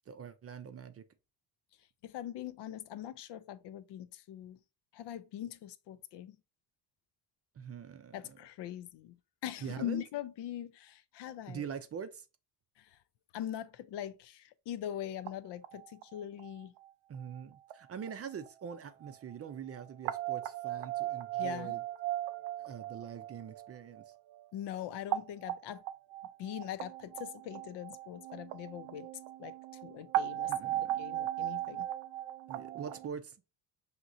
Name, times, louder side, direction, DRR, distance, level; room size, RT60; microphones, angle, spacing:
voice 1, 0.1-1.0 7.6-8.4 9.6-10.0 11.5-12.3 17.1-21.8 22.6-24.1 30.5-31.0 32.5-33.4, right 7 dB, 35° right, 0.5 m, -44 dB
voice 2, 2.0-4.6 4.9-6.4 8.1-9.2 9.4-11.6 12.8-13.0 13.3-16.7 21.4-21.8 24.5-25.8 26.4-29.1 29.4-29.6 29.8-30.5 31.0-31.9, left 11 dB, 65° left, 0.6 m, -42 dB
sound 1, 15.3-15.4 15.6-16.8 17.3-17.4 17.7-17.8 18.0-18.1 18.5-18.6 18.7-19.1 19.5-24.4 24.9-33.1, right 14 dB, 90° right, 0.6 m, -37 dB
5.9 x 2.9 x 2.6 m
cardioid pair, 110°, 45 cm